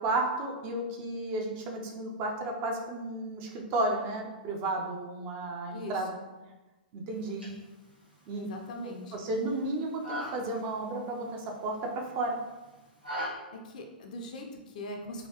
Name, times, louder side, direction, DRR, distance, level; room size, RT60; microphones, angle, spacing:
voice 1, 0.0-6.1 6.9-7.5 8.3-8.5 9.1-12.4, right 2 dB, 35° right, 1 dB, 0.6 m, -33 dB
voice 2, 5.7-6.2 8.3-9.2 13.6-15.3, left 1 dB, 55° left, 2 dB, 0.5 m, -41 dB
sound 1, 7.1-13.3, equal, 85° right, 1.1 m, -43 dB
3.9 x 2.3 x 2.8 m, 1.1 s
figure-of-eight pair, 105°, 5 cm